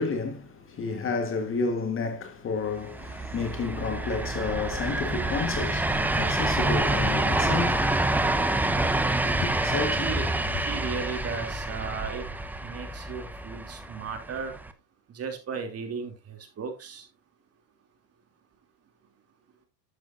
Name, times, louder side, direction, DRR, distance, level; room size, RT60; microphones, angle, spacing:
voice 1, 0.0-7.8 9.2-10.1, left 4 dB, 25° left, 1.5 m, -31 dB
sound 1, 2.8-14.7, right 2 dB, 5° right, 0.7 m, -27 dB
voice 2, 10.5-12.3 12.6-14.5 15.1-17.1, right 5 dB, 30° right, 3.0 m, -35 dB
12.0 x 8.1 x 2.6 m
supercardioid pair, 125°, 49 cm